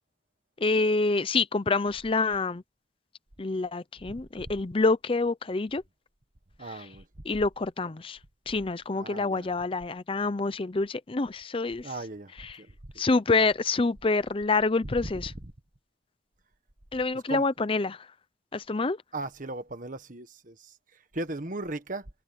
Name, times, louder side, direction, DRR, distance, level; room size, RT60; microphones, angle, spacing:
voice 1, 0.6-2.6 3.4-5.8 7.3-8.2 8.5-11.9 13.0-15.3 16.9-18.0 18.5-19.0, left 3 dB, 30° left, 0.6 m, -27 dB
voice 2, 6.6-7.0 8.9-9.5 11.8-12.3 12.6-12.7 13.1-13.2 14.8-15.5 17.1-17.5 19.1-20.7 21.1-22.1, right 2 dB, 45° right, 1.5 m, -37 dB
head